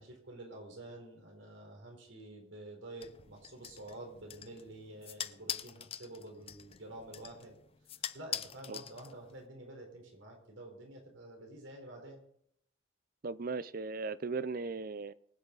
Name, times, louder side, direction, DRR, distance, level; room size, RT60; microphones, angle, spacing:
voice 1, 0.0-7.5 7.9-12.2, right 1 dB, 80° right, 1 dB, 4.4 m, -49 dB
sound 1, 3.0-9.5, left 9 dB, 30° left, 0.5 m, -44 dB
voice 2, 13.2-15.1, right 4 dB, 50° right, 17 dB, 0.5 m, -37 dB
23.5 x 8.9 x 4.1 m, 0.70 s
head